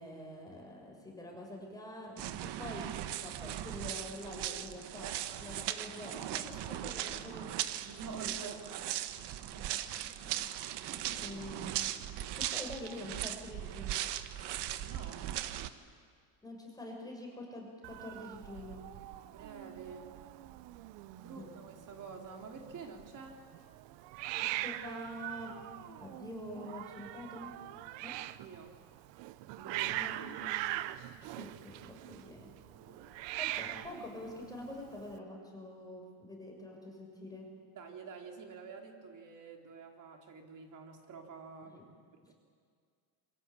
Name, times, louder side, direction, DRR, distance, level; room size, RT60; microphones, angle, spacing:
voice 1, 0.0-2.9 3.2-5.1 5.4-7.8 8.1-8.6 9.4-10.5 11.2-11.8 12.4-14.0 16.4-18.9 21.3-21.5 24.4-25.6 26.0-27.6 28.0-28.2 29.8-30.4 31.4-32.5 33.4-37.5 41.7-41.8, left 1 dB, 10° left, 0 dB, 6.6 m, -46 dB
sound 1, 2.2-15.7, right 12 dB, 70° right, 1.4 m, -38 dB
voice 2, 7.8-8.6 10.9-11.3 14.8-15.3 19.3-20.1 21.2-23.4 28.4-28.8 29.5-29.9 32.7-33.4 37.8-41.8 42.1-42.3, right 5 dB, 45° right, 3 dB, 3.9 m, -48 dB
Hiss, 17.8-35.2, right 15 dB, 85° right, 1.0 m, -42 dB
27.0 x 23.5 x 8.7 m, 2.1 s
cardioid pair, 130°, 42 cm